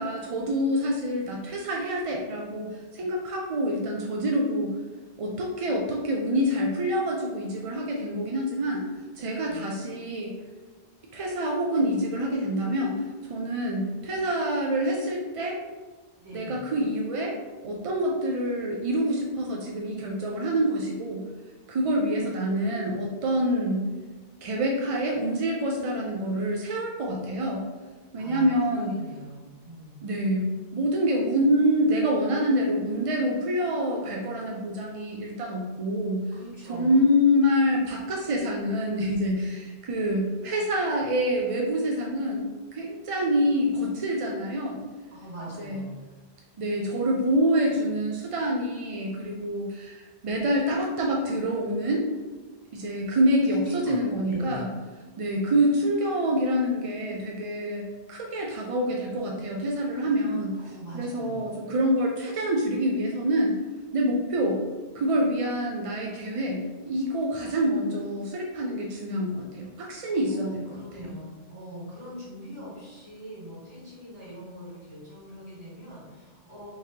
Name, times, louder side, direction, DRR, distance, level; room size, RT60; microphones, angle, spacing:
voice 1, 0.0-4.7 5.2-8.8 9.2-10.3 11.1-13.0 13.3-15.6 16.3-17.4 17.6-21.2 21.7-23.8 24.4-27.6 28.1-28.9 30.0-36.2 36.7-44.9 45.6-45.8 46.6-52.0 52.7-54.7 55.2-60.5 60.9-63.5 63.9-64.6 64.9-70.8, equal, 55° right, -1 dB, 0.4 m, -26 dB
voice 2, 9.2-9.6 16.2-16.6 28.2-30.0 36.3-37.1 45.1-46.0 53.6-54.0 54.2-54.7 60.6-61.5 70.0-76.7, equal, 30° right, -9 dB, 1.7 m, -42 dB
3.6 x 3.1 x 2.8 m, 1.3 s
omnidirectional pair, 1.1 m